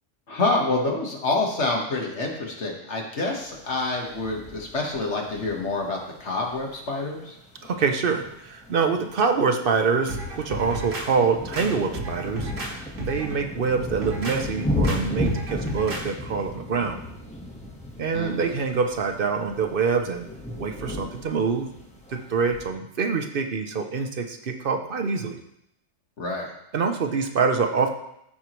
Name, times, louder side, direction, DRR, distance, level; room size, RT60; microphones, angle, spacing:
voice 1, 0.3-7.3 18.1-18.6 26.2-26.5, left 2 dB, 60° left, 0 dB, 1.7 m, -27 dB
sound 1, 3.3-22.6, left 1 dB, 5° left, 1.1 m, -35 dB
voice 2, 7.6-17.0 18.0-20.3 20.6-21.7 22.1-25.4 26.7-27.9, right 5 dB, 50° right, 5 dB, 0.9 m, -25 dB
sound 2, 10.1-11.1 11.5-12.7 13.0-13.3 13.8-14.4 14.8-15.0 15.3-16.0 16.4-16.5, right 1 dB, 80° right, 1.8 m, -33 dB
14.0 x 4.8 x 3.0 m, 0.78 s
omnidirectional pair, 1.3 m